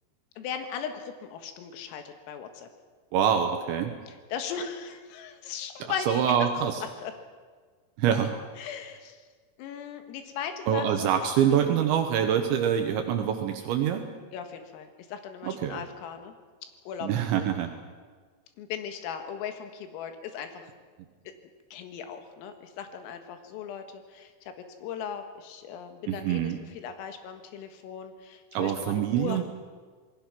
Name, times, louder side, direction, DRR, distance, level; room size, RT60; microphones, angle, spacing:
voice 1, 0.4-2.7 4.1-7.1 8.6-9.2 9.6-11.1 14.3-16.3 16.9-17.5 18.6-20.7 21.7-24.3 24.8-29.4, left 7 dB, 90° left, 7 dB, 4.3 m, -38 dB
voice 2, 3.1-3.9 6.1-6.8 8.0-8.3 10.7-14.0 15.4-15.8 17.0-17.7 26.1-26.6 28.5-29.4, right 9 dB, 75° right, 5 dB, 3.2 m, -25 dB
26.5 x 20.0 x 6.1 m, 1.5 s
omnidirectional pair, 5.9 m